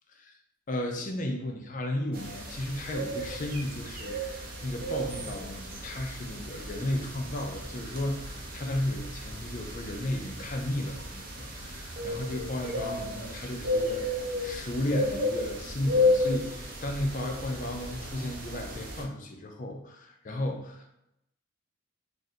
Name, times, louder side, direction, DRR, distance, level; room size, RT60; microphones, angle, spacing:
voice 1, 0.7-20.9, left 1 dB, 35° left, 3 dB, 0.5 m, -34 dB
sound 1, 2.1-19.0, left 1 dB, 45° right, 0.6 m, -33 dB
2.7 x 2.5 x 4.2 m, 0.83 s
head